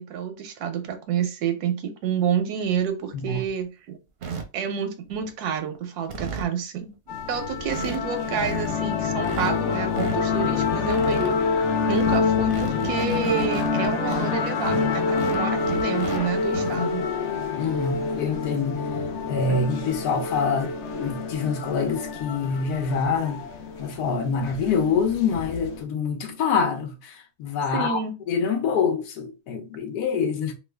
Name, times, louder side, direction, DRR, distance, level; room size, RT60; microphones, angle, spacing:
voice 1, 0.0-4.0 4.5-6.9 7.3-11.4 11.9-17.1 19.5-19.6 27.7-28.1, right 7 dB, 85° right, 1.2 m, -29 dB
sound 1, 2.8-2.9 3.3-3.6 4.2-4.4 5.1-5.4 5.8-5.9 6.1-6.5 7.1-7.2 7.4-7.5 7.7-8.0 8.2-8.7 9.2-10.2 10.6-11.3 11.7-14.2 14.6-16.2 16.4-16.7 18.1-18.2 18.6-18.7 19.9-20.1, right 6 dB, 60° right, 0.7 m, -34 dB
sound 2, 7.1-25.8, left 5 dB, 60° left, 0.9 m, -27 dB
voice 2, 17.6-18.8 19.3-23.4 23.8-28.0 28.3-30.5, left 5 dB, 90° left, 1.2 m, -26 dB
3.1 x 2.2 x 3.2 m
omnidirectional pair, 1.6 m